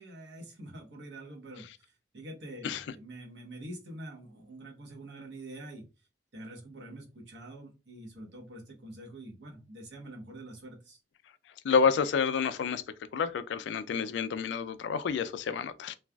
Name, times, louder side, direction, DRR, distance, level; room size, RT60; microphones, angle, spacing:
voice 1, 0.0-5.8 6.3-11.0, right 1 dB, 80° right, 1.0 m, -46 dB
voice 2, 11.6-12.8 13.1-16.0, left 6 dB, 90° left, 0.3 m, -29 dB
3.1 x 2.4 x 2.2 m
head